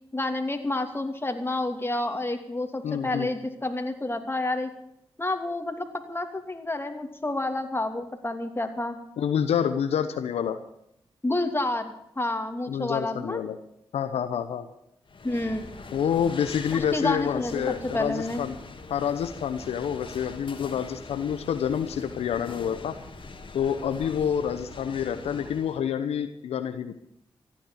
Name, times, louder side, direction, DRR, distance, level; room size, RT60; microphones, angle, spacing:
voice 1, 0.1-4.7 5.2-9.0 11.2-13.4 15.2-15.7 16.7-18.4, left 2 dB, 20° left, 5 dB, 2.8 m, -29 dB
voice 2, 2.8-3.3 9.2-10.6 12.7-13.6 13.9-14.7 15.9-18.6 18.9-22.9 23.5-27.1, left 8 dB, 85° left, 9 dB, 0.9 m, -28 dB
sound 1, 15.1-25.8, left 3 dB, 55° left, 2.5 m, -42 dB
15.0 x 10.0 x 8.5 m, 0.77 s
supercardioid pair, 40°, 10 cm